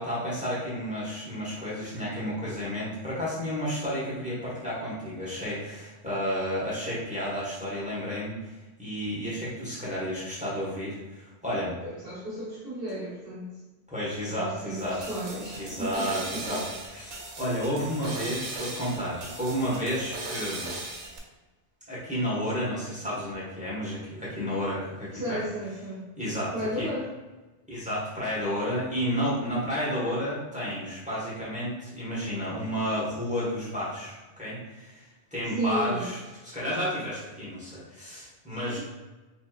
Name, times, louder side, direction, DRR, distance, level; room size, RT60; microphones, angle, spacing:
voice 1, 0.0-8.3 8.8-11.7 13.9-15.0 15.6-20.7 21.9-25.4 26.2-26.9 27.7-35.0 35.3-36.2 36.4-38.8, equal, 5° right, -8 dB, 1.1 m, -31 dB
voice 2, 11.8-13.5 14.3-16.6 25.1-26.0 26.5-27.1 35.5-36.1, right 1 dB, 55° right, -11 dB, 1.4 m, -34 dB
sound 1, 14.8-21.2, right 2 dB, 80° right, 1.1 m, -38 dB
4.4 x 2.9 x 2.3 m, 1.2 s
omnidirectional pair, 1.2 m